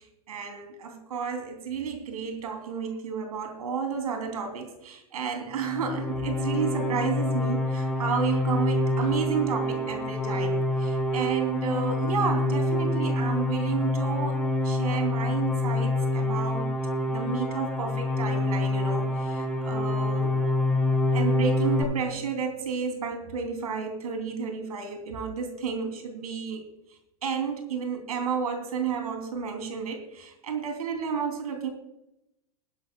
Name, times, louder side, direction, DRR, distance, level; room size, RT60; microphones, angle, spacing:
voice 1, 0.0-16.7 17.1-20.3 21.1-26.6 27.2-31.7, right 6 dB, 75° right, 5 dB, 3.3 m, -31 dB
sound 1, 5.6-21.8, left 2 dB, 5° left, 4.7 m, -26 dB
20.5 x 11.0 x 2.4 m, 0.87 s
hypercardioid pair, 105°, 19 cm